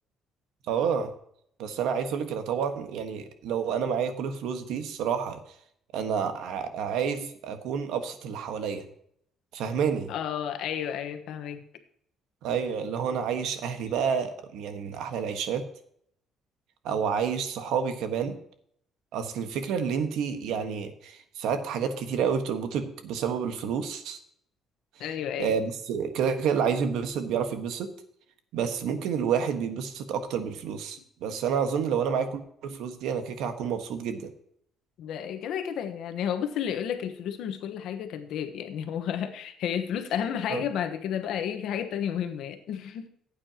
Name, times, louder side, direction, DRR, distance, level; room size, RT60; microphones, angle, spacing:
voice 1, 0.7-1.1 1.6-5.4 5.9-8.8 9.5-10.1 12.4-15.6 16.8-18.4 19.1-24.2 25.4-27.9 28.5-34.3 40.5-40.6, right 7 dB, 85° right, 7 dB, 1.4 m, -29 dB
voice 2, 10.1-11.6 25.0-25.5 35.0-43.0, left 9 dB, 65° left, 8 dB, 1.2 m, -32 dB
15.0 x 8.7 x 2.9 m, 0.68 s
cardioid pair, 175°, 0 cm